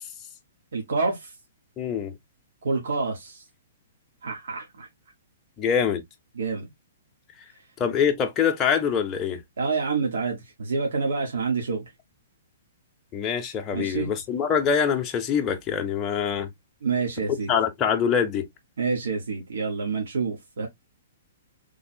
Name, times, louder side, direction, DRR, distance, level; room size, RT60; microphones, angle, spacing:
voice 1, 0.7-1.3 2.6-3.4 4.2-4.9 6.4-6.7 9.6-11.8 13.7-14.1 16.8-17.5 18.8-20.7, right 4 dB, 90° right, 1.2 m, -27 dB
voice 2, 1.8-2.1 5.6-6.0 7.8-9.4 13.1-16.5 17.5-18.5, left 7 dB, 15° left, 0.6 m, -24 dB
3.3 x 2.0 x 4.3 m
hypercardioid pair, 165°, 0 cm